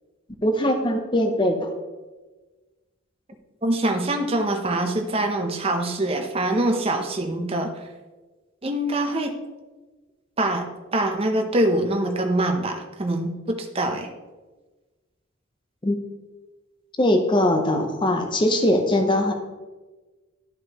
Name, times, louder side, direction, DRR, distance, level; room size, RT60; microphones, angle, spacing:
voice 1, 0.4-1.7 15.8-16.0 17.0-19.3, left 1 dB, 25° left, 5 dB, 0.6 m, -21 dB
voice 2, 3.6-7.7 8.6-9.3 10.4-10.6 10.9-14.1, right 1 dB, 30° right, 4 dB, 0.7 m, -24 dB
11.5 x 4.9 x 2.9 m, 1.2 s
head